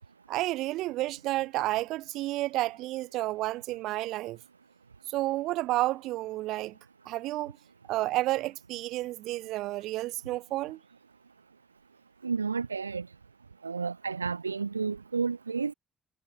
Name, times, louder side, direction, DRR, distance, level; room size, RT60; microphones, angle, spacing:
voice 1, 0.3-4.4 5.1-6.8 7.1-7.6 7.9-10.8, right 17 dB, 60° right, 7.1 m, -31 dB
voice 2, 12.2-13.1 13.6-15.7, right 5 dB, 85° right, 4.1 m, -31 dB
figure-of-eight pair, 45°, 0 cm